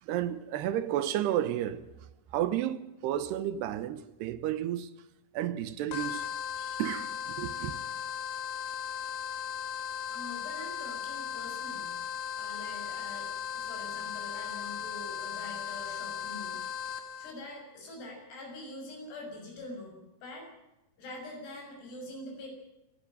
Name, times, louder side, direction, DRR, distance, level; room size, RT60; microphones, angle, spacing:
voice 1, 0.0-1.9 2.3-4.9 5.3-6.3 6.6-7.7, right 11 dB, 90° right, 3.1 m, -32 dB
sound 1, 5.9-17.3, left 9 dB, 60° left, 3.3 m, -37 dB
voice 2, 10.1-12.0 12.4-16.6 17.2-20.5 21.0-22.5, left 2 dB, 80° left, 8.7 m, -45 dB
26.5 x 12.0 x 8.9 m
omnidirectional pair, 4.7 m